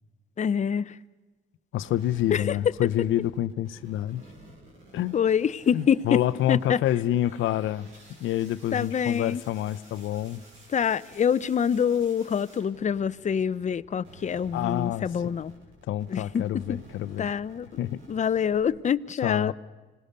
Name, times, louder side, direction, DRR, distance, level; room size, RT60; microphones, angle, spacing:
voice 1, 0.4-0.9 2.3-2.4 5.1-6.2 6.5-6.8 8.7-9.4 10.7-15.5 16.1-16.4 16.7-16.8 17.2-17.7 18.1-19.5, left 7 dB, 35° left, 0.6 m, -25 dB
voice 2, 1.7-4.2 4.9-5.2 5.7-7.9 8.2-10.4 14.5-15.3 15.9-17.3 17.8-18.0 19.2-19.5, left 12 dB, 80° left, 0.7 m, -28 dB
sound 1, 1.8-13.7 14.0-18.6, right 2 dB, 85° right, 6.5 m, -51 dB
26.0 x 18.0 x 6.6 m
cardioid pair, 90°, 20 cm